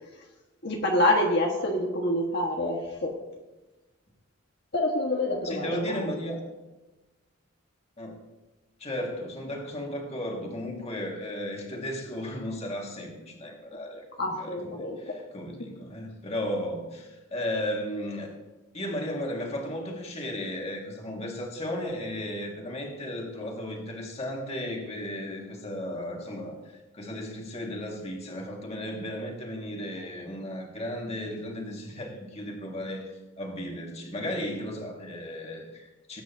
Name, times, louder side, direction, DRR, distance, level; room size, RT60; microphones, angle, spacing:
voice 1, 0.6-3.1 4.7-6.1 14.2-15.1, left 1 dB, 55° left, -1 dB, 1.6 m, -27 dB
voice 2, 5.4-6.4 8.0-8.2 8.8-18.3 18.7-36.2, left 1 dB, 30° left, 0 dB, 1.9 m, -35 dB
19.5 x 9.2 x 2.8 m, 1.1 s
head